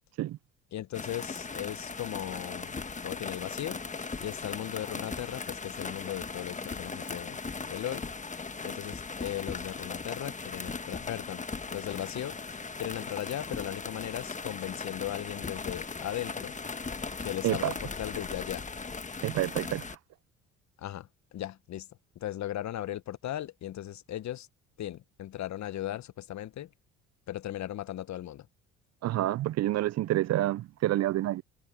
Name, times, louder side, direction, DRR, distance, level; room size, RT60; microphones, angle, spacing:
voice 1, 0.7-2.7 3.0-3.8 4.2-8.0 8.6-11.4 11.7-12.4 12.8-16.5 17.2-18.6 20.8-21.9 22.1-24.5 24.8-26.7 27.3-28.5, left 13 dB, 55° left, 1.4 m, -37 dB
sound 1, 0.9-20.0, left 4 dB, 20° left, 1.4 m, -38 dB
voice 2, 19.2-19.8 29.0-31.4, right 14 dB, 50° right, 0.6 m, -28 dB
hypercardioid pair, 55°, 34 cm